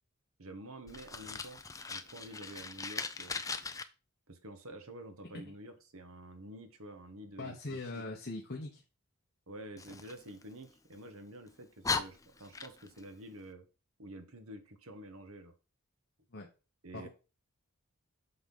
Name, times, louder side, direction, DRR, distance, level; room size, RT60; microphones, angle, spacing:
voice 1, 0.4-1.6 1.9-3.4 4.3-8.0 9.5-13.6 14.0-15.5 16.8-17.1, right 1 dB, 70° right, 7 dB, 1.4 m, -49 dB
Fire, 0.9-3.8 9.8-11.0 11.5-11.6 11.8-13.0, left 4 dB, 15° left, 0.5 m, -39 dB
voice 2, 7.4-8.8 16.3-16.5 16.9-17.1, left 2 dB, 50° left, 1 dB, 1.2 m, -41 dB
8.0 x 3.7 x 5.6 m, 0.31 s
head